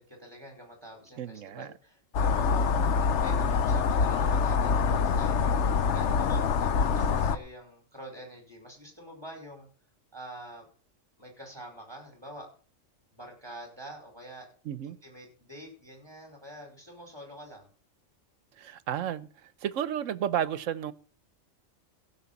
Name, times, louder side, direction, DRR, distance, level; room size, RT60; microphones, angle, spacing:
voice 1, 0.0-2.8 3.2-5.5 5.9-9.7 10.1-10.7 11.2-12.5 13.1-14.5 14.8-17.7, equal, 20° right, 5.1 m, -46 dB
voice 2, 1.2-1.7 2.7-3.0 14.6-15.0 18.6-20.9, right 10 dB, 80° right, 1.1 m, -33 dB
sound 1, 2.1-7.4, left 5 dB, 65° left, 1.1 m, -25 dB
15.5 x 5.9 x 7.1 m
omnidirectional pair, 1.3 m